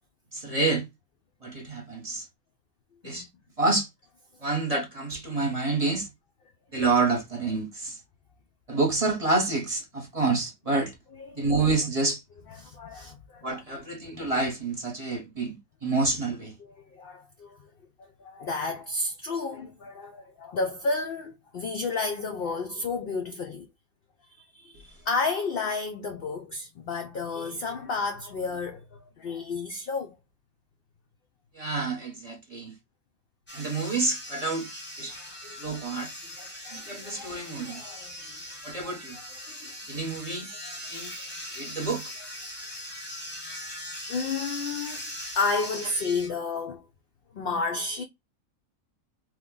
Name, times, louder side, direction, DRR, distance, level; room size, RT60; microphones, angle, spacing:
voice 1, 0.3-0.9 1.4-2.3 3.0-3.3 3.6-3.9 4.4-6.1 6.7-8.0 8.7-10.9 11.3-12.2 13.4-15.5 15.8-16.5 31.5-32.7 33.5-34.7 35.0-35.2 35.5-36.1 36.7-37.8 38.6-39.2 39.9-40.5 40.9-41.1 41.6-42.0, right 3 dB, 30° right, 0.8 m, -28 dB
voice 2, 12.6-13.6 14.1-14.2 16.6-17.6 18.2-23.7 24.4-28.9 29.2-30.1 35.2-35.8 36.4-38.4 38.8-38.9 39.4-39.7 40.7-40.8 44.1-45.0 45.4-46.8 47.3-48.0, left 4 dB, 80° left, 0.5 m, -32 dB
Electric razor shaving a face, 33.5-46.3, equal, 10° left, 0.7 m, -40 dB
3.0 x 2.1 x 3.6 m
omnidirectional pair, 1.5 m